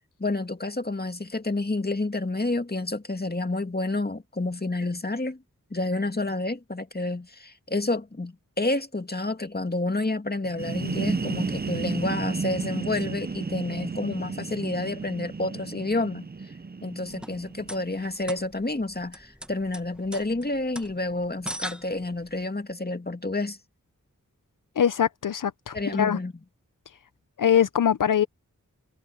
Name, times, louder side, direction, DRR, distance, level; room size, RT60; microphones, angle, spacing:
voice 1, 0.2-5.4 5.7-16.3 16.8-23.6 25.7-26.3, left 2 dB, 30° left, 2.2 m, -29 dB
sound 1, 10.4-18.1, right 4 dB, 30° right, 0.6 m, -32 dB
sound 2, 17.0-22.4, equal, 5° right, 1.6 m, -41 dB
voice 2, 24.8-26.2 27.4-28.3, left 8 dB, 75° left, 0.6 m, -22 dB
cardioid pair, 40°, 32 cm